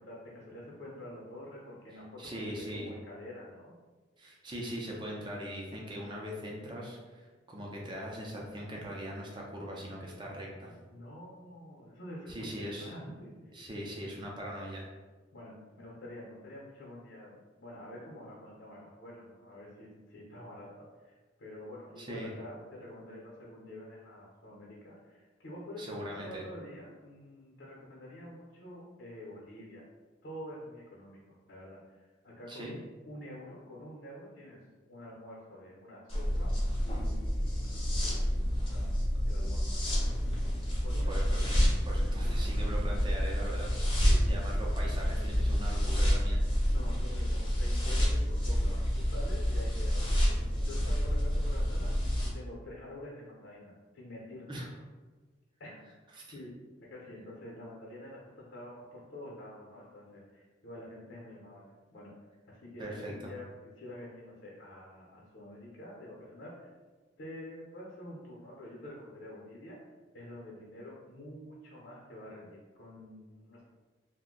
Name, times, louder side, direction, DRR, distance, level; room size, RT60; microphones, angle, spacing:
voice 1, 0.0-3.7 10.9-13.4 15.3-29.8 30.2-32.7 33.1-34.6 34.9-38.4 38.7-38.9 39.3-39.8 40.8-41.3 44.1-44.4 46.7-54.8 55.6-55.7 56.3-62.1 62.5-63.5 63.8-66.7 67.2-69.8 70.1-73.6, left 1 dB, 70° left, -4 dB, 0.8 m, -47 dB
voice 2, 2.2-2.9 4.2-10.7 12.3-13.1 13.5-14.9 22.0-22.3 25.8-26.4 32.5-32.8 41.1-41.5 41.8-43.7 44.0-46.4 54.5-54.7 56.1-56.4 62.8-63.3, equal, 25° right, -2 dB, 0.5 m, -41 dB
sound 1, 36.1-52.3, equal, 30° left, 0.7 m, -29 dB
2.6 x 2.1 x 3.7 m, 1.3 s
head